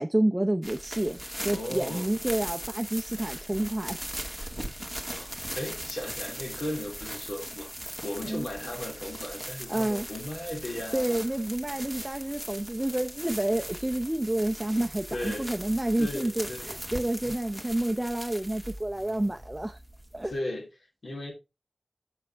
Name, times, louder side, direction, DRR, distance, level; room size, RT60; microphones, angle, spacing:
voice 1, 0.0-4.0 8.2-8.5 9.7-10.1 10.9-19.8 20.1-20.3, right 1 dB, 15° right, 0.6 m, -29 dB
sound 1, 0.6-20.4, equal, 10° left, 2.0 m, -39 dB
voice 2, 1.5-2.1 5.1-11.3 15.1-15.5 16.0-16.7 17.2-17.3 20.2-21.3, left 1 dB, 75° left, 3.3 m, -36 dB
7.5 x 6.7 x 3.4 m
wide cardioid pair, 80°, 0 cm